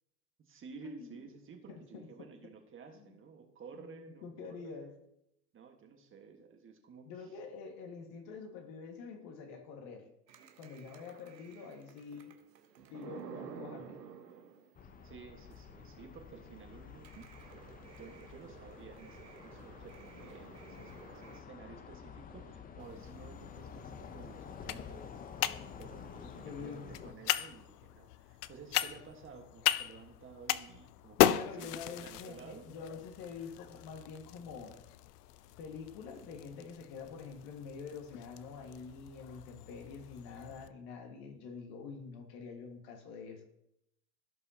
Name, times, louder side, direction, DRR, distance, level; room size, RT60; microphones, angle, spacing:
voice 1, 0.4-4.9 5.5-7.4 15.0-17.6 18.0-25.1 25.8-32.7, right 5 dB, 25° right, 4 dB, 1.4 m, -53 dB
voice 2, 1.7-2.3 2.9-3.0 3.7-4.9 7.1-10.1 10.6-12.3 12.9-14.0 26.4-27.2 31.2-34.8 35.6-43.4, left 5 dB, 50° left, 4 dB, 1.7 m, -46 dB
sound 1, 10.3-15.0 15.5-15.6 15.9-16.0 16.3-21.4, right 7 dB, 90° right, 1.3 m, -52 dB
sound 2, 14.7-27.1, left 7 dB, 20° left, 0.6 m, -50 dB
sound 3, 22.8-40.7, left 13 dB, 70° left, 0.6 m, -37 dB
16.5 x 5.4 x 2.8 m, 0.80 s
hypercardioid pair, 100°, 49 cm